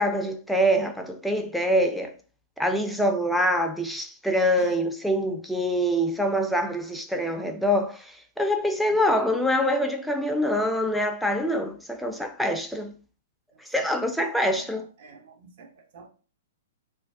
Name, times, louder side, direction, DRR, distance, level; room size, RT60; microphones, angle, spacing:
voice 1, 0.0-2.1 2.6-12.9 13.7-14.8, equal, ahead, 0.4 m, -25 dB
voice 2, 8.7-9.4 13.5-14.1 14.5-16.1, right 4 dB, 55° right, 0.7 m, -47 dB
2.5 x 2.2 x 3.4 m
figure-of-eight pair, 115°, 0 cm